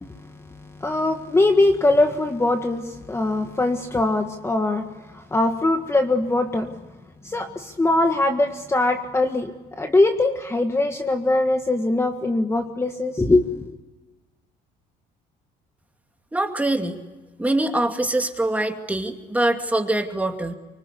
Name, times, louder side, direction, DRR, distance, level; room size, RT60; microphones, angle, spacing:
voice 1, 0.0-4.8 5.1-6.7 7.2-9.5 9.8-13.8, left 2 dB, 15° left, 5 dB, 1.6 m, -22 dB
voice 2, 16.3-17.0 17.4-20.5, right 1 dB, 10° right, 5 dB, 2.5 m, -23 dB
25.0 x 25.0 x 8.3 m, 1.2 s
cardioid pair, 110°, 17 cm